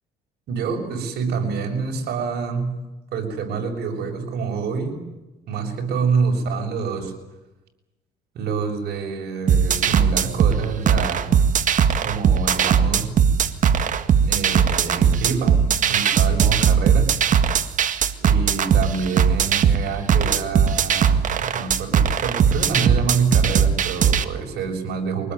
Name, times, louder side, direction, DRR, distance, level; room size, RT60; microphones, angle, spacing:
voice 1, 0.5-2.7 3.1-5.0 5.5-7.1 8.3-11.3 12.0-13.1 14.2-15.6 15.9-17.1 18.2-25.3, right 5 dB, 70° right, 4 dB, 6.8 m, -27 dB
sound 1, 9.5-24.2, right 7 dB, 50° right, 1.9 m, -19 dB
24.5 x 19.5 x 9.7 m, 1.0 s
cardioid pair, 110°, 17 cm